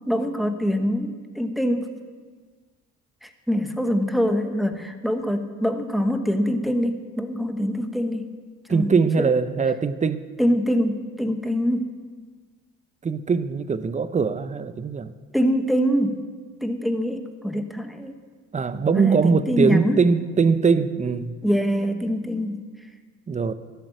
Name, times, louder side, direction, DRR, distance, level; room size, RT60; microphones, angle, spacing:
voice 1, 0.1-1.9 3.2-8.3 8.7-9.0 10.4-11.9 15.3-16.2 16.6-18.2 18.9-20.0 21.4-22.6, equal, ahead, 6 dB, 1.1 m, -24 dB
voice 2, 8.7-10.2 13.0-15.1 18.5-21.4 23.3-23.5, right 5 dB, 25° right, 13 dB, 0.7 m, -21 dB
13.0 x 8.1 x 7.7 m, 1.5 s
cardioid pair, 90°, 31 cm